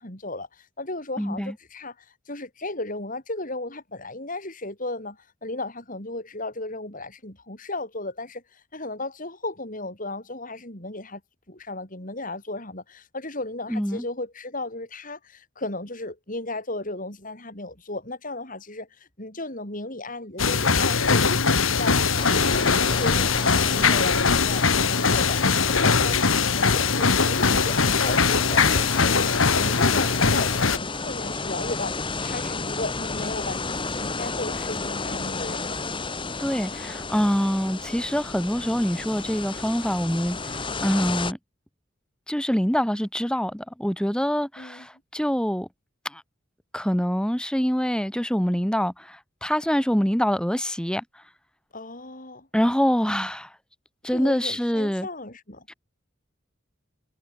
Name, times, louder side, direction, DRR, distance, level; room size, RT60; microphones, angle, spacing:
voice 1, 0.0-11.2 11.5-35.8 44.6-44.9 51.7-52.5 54.1-55.7, left 2 dB, 40° left, 7.2 m, -35 dB
voice 2, 1.2-1.5 13.7-14.0 36.4-41.4 42.3-45.7 46.0-46.2 46.7-51.0 52.5-53.5 54.0-55.1 55.7-55.8, equal, 5° left, 2.7 m, -25 dB
sound 1, 20.4-30.8, left 5 dB, 85° left, 1.9 m, -21 dB
sound 2, 22.2-41.3, left 3 dB, 25° left, 2.1 m, -32 dB
head